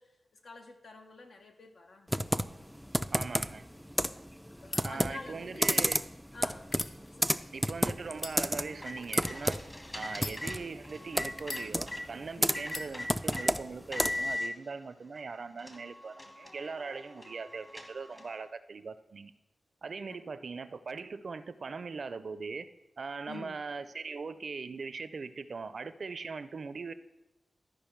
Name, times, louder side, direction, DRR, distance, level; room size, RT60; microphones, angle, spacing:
voice 1, 0.0-2.2 4.6-5.9 6.3-6.7 7.2-7.6 10.1-10.3 12.4-12.6 20.1-20.3 23.3-23.6, left 3 dB, 75° left, 4 dB, 1.1 m, -48 dB
Computer keyboard, 2.1-14.4, equal, ahead, 0.3 m, -32 dB
voice 2, 3.1-3.7 4.8-6.0 7.5-9.6 9.9-19.3 19.8-22.7 23.0-26.9, right 4 dB, 65° right, 13 dB, 0.5 m, -40 dB
sound 1, 4.5-4.8 5.5-5.8 6.6-7.6 8.1-8.4 9.0-9.3 10.1-10.8 11.4-12.1 12.7-12.9, left 2 dB, 50° left, 0.7 m, -41 dB
sound 2, 8.6-12.0 12.5-13.5 13.9-14.5 15.2-15.3 15.6-18.4, left 1 dB, 30° left, 1.5 m, -40 dB
13.0 x 5.1 x 4.5 m, 0.95 s
cardioid pair, 55°, 0 cm